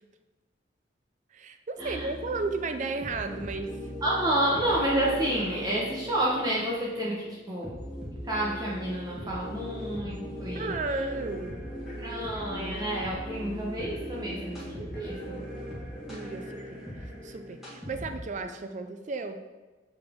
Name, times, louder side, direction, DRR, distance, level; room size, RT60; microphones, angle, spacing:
voice 1, 1.3-3.8 10.5-11.6 16.1-16.8 17.2-19.4, right 3 dB, 40° right, 7 dB, 0.4 m, -34 dB
sound 1, 1.8-18.5, equal, ahead, 1.8 m, -39 dB
voice 2, 4.0-7.7 8.2-10.7 12.0-15.4, right 1 dB, 20° right, -5 dB, 0.9 m, -29 dB
6.8 x 4.1 x 3.6 m, 1.2 s
head